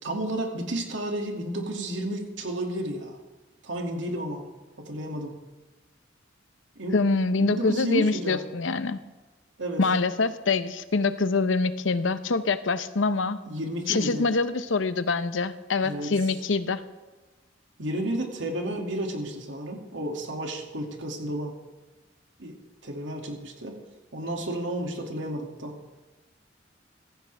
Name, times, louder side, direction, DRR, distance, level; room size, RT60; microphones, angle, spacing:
voice 1, 0.0-3.2 3.6-4.5 4.8-5.3 6.8-7.0 7.4-8.4 9.6-9.8 13.5-14.3 15.8-16.2 17.8-21.5 22.4-22.6 22.8-23.8 24.1-25.8, right 1 dB, 75° right, 2 dB, 2.4 m, -32 dB
voice 2, 6.9-9.0 9.8-13.4 13.9-16.8, left 3 dB, 85° left, 12 dB, 0.8 m, -25 dB
16.0 x 14.5 x 3.4 m, 1.2 s
head